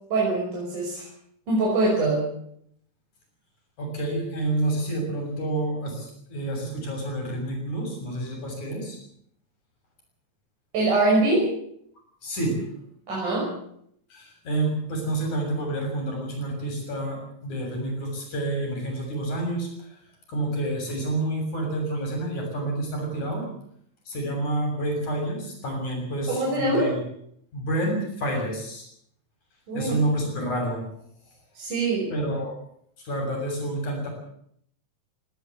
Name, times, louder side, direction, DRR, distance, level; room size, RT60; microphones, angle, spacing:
voice 1, 0.1-1.1 1.5-2.3 10.7-11.5 13.1-13.5 26.3-26.9 29.7-30.0 31.6-32.1, right 2 dB, 80° right, -4 dB, 7.5 m, -23 dB
voice 2, 3.8-9.0 12.2-12.5 14.1-20.0 20.3-23.4 24.1-27.0 27.5-28.9 29.7-30.8 32.1-32.6 33.0-34.1, right 1 dB, 65° left, 2 dB, 8.5 m, -29 dB
18.5 x 18.0 x 8.4 m, 0.69 s
omnidirectional pair, 3.5 m